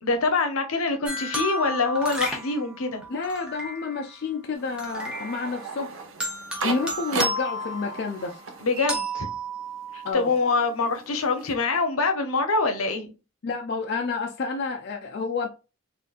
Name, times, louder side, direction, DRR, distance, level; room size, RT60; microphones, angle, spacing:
voice 1, 0.0-3.1 8.6-9.3 9.9-13.1, left 3 dB, 80° left, 0.7 m, -25 dB
sound 1, 1.0-4.1 4.7-5.7 6.2-8.4 8.9-10.1, right 1 dB, 5° right, 0.6 m, -32 dB
voice 2, 3.1-5.9 6.6-8.4 10.0-10.3 13.4-15.5, left 4 dB, 50° left, 0.4 m, -29 dB
sound 2, 4.5-9.7 10.0-11.5, right 4 dB, 65° right, 0.6 m, -36 dB
3.8 x 2.5 x 2.4 m
head